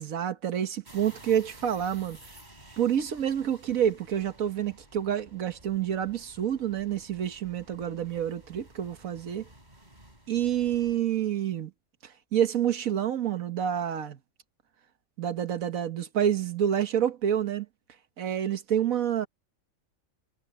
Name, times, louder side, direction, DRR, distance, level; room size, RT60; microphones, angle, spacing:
voice 1, 0.0-2.2 2.8-9.4 10.3-11.7 12.0-14.2 15.2-17.7 18.2-19.3, right 9 dB, 85° right, 1.5 m, -28 dB
sound 1, 0.8-11.0, right 1 dB, 30° right, 5.8 m, -53 dB
omnidirectional pair, 1.4 m